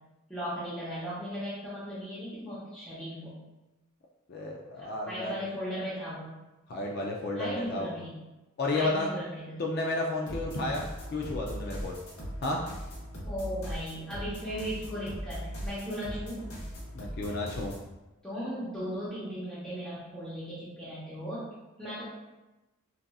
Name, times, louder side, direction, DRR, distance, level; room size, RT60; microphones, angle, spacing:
voice 1, 0.3-3.4 4.7-6.3 7.4-8.2 8.7-9.7 13.2-16.5 18.2-21.5 21.8-22.0, equal, 5° left, -12 dB, 0.7 m, -37 dB
voice 2, 4.3-5.3 6.7-7.9 8.6-9.1 9.6-10.8 11.1-12.0 12.4-12.6 16.9-17.7, left 2 dB, 50° left, -1 dB, 0.3 m, -32 dB
sound 1, 10.3-17.9, equal, 85° left, 0.9 m, -39 dB
4.0 x 2.4 x 2.3 m, 1.1 s
head